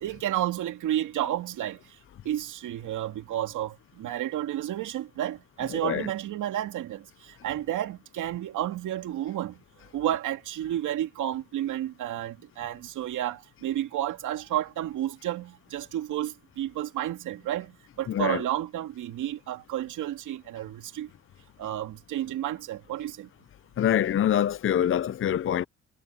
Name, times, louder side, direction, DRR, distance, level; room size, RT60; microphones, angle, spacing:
voice 1, 0.0-1.8 2.2-9.6 9.9-21.1 21.6-23.3, right 12 dB, 80° right, 2.5 m, -31 dB
voice 2, 5.7-6.1 18.1-18.4 23.8-25.6, left 10 dB, 45° left, 0.6 m, -25 dB
cardioid pair, 90°, 30 cm